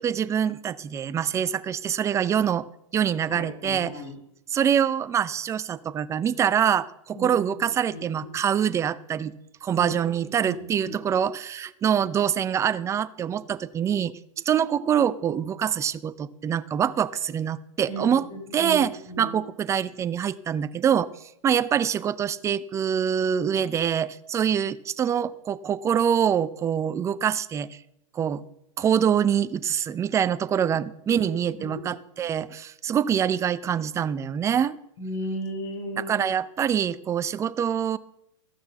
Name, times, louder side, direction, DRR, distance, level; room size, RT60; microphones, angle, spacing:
voice 1, 0.0-2.7 2.9-4.0 4.5-9.3 9.6-14.2 14.5-18.3 18.5-21.1 21.4-27.8 28.1-28.4 28.8-34.8 36.0-38.0, right 8 dB, 15° right, 15 dB, 0.5 m, -25 dB
voice 2, 3.3-4.1 7.1-7.4 7.9-8.0 9.8-10.0 10.5-10.9 17.9-19.3 31.1-31.3 31.7-31.8 35.0-36.2, equal, 55° left, 2 dB, 5.1 m, -35 dB
14.0 x 6.5 x 7.2 m, 0.78 s
hypercardioid pair, 130°, 17 cm